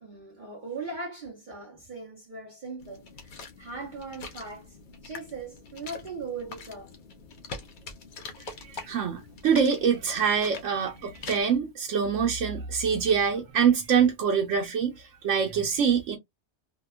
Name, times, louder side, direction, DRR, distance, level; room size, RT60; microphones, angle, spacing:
voice 1, 0.0-4.8 5.0-6.9 8.8-9.0, right 3 dB, 45° right, 0.8 m, -39 dB
sound 1, 2.8-11.4, left 4 dB, 55° left, 0.6 m, -44 dB
voice 2, 8.4-16.2, right 7 dB, 85° right, 1.0 m, -25 dB
2.8 x 2.2 x 2.2 m
omnidirectional pair, 1.2 m